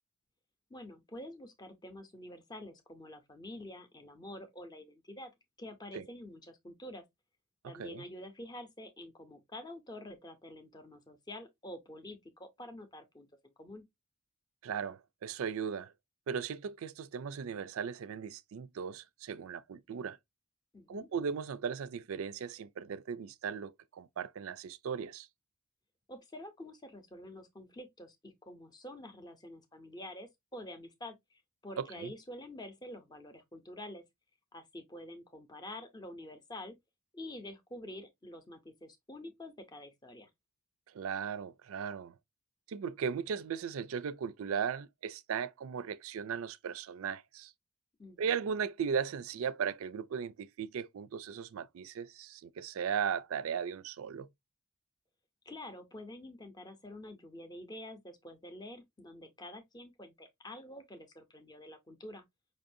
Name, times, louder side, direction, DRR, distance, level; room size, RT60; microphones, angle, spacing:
voice 1, 0.7-5.3 5.6-7.0 7.6-13.8 20.7-21.1 26.1-34.0 34.5-36.8 37.1-40.3 48.0-48.4 55.5-62.2, left 1 dB, 20° left, 0.7 m, -48 dB
voice 2, 7.6-8.0 14.6-15.9 16.3-20.2 20.9-25.3 31.8-32.1 40.9-42.1 42.7-47.5 48.2-54.3, right 7 dB, 65° right, 0.4 m, -37 dB
5.2 x 2.6 x 2.6 m
head